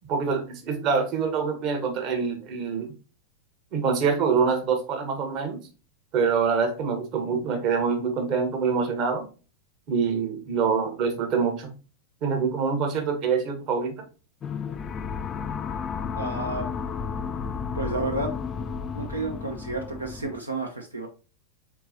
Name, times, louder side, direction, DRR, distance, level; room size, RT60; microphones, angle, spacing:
voice 1, 0.1-2.9 3.7-5.6 6.1-9.3 9.9-11.7 12.2-14.0, right 5 dB, 40° right, 5 dB, 1.0 m, -25 dB
sound 1, 14.4-20.4, left 6 dB, 25° left, 0.3 m, -32 dB
voice 2, 16.1-16.7 17.7-18.4 18.9-21.1, right 2 dB, 80° right, 4 dB, 0.5 m, -31 dB
4.4 x 4.0 x 2.7 m, 0.35 s
figure-of-eight pair, 90°, 0 cm